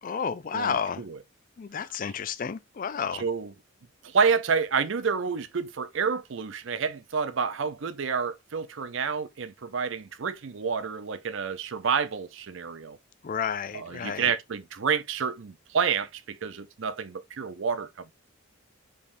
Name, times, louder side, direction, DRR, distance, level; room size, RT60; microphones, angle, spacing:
voice 1, 0.0-1.0 1.6-3.2 13.2-14.3, left 7 dB, 40° left, 0.4 m, -31 dB
voice 2, 0.5-1.2 3.2-3.5 4.0-13.0 13.7-18.1, right 6 dB, 60° right, 0.5 m, -29 dB
5.1 x 3.4 x 2.6 m
head